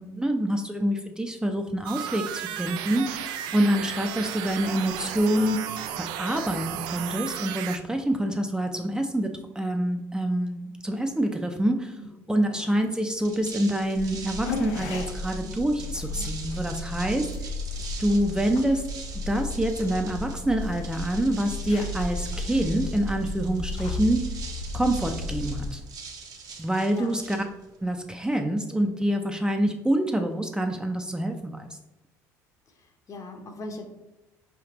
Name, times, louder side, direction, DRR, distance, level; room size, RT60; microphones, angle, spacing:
voice 1, 0.0-5.6 6.2-9.3 9.6-12.0 12.3-17.3 18.0-18.8 19.3-24.2 24.7-25.8 26.6-27.4 27.8-31.7, right 1 dB, 10° right, 4 dB, 0.5 m, -26 dB
sound 1, 1.8-7.8, right 10 dB, 70° right, 0.3 m, -34 dB
sound 2, 13.1-27.9, right 5 dB, 50° right, 0.9 m, -43 dB
sound 3, 13.9-25.7, left 3 dB, 75° left, 0.5 m, -34 dB
voice 2, 26.6-27.2 32.7-33.8, left 2 dB, 45° left, 5 dB, 0.8 m, -41 dB
4.6 x 3.5 x 2.9 m, 0.99 s
hypercardioid pair, 75°, 8 cm